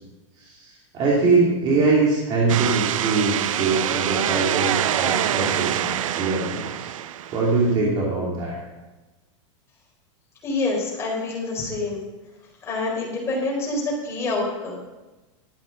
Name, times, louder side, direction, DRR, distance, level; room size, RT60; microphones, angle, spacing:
voice 1, 0.9-5.9 6.2-6.9 7.3-8.6, right 3 dB, 25° right, -4 dB, 2.7 m, -22 dB
sound 1, 2.5-7.7, right 11 dB, 90° right, 0.7 m, -25 dB
voice 2, 10.4-12.0 12.6-14.9, left 2 dB, 15° left, -3 dB, 4.5 m, -27 dB
13.0 x 8.8 x 6.4 m, 1.1 s
supercardioid pair, 165°, 16 cm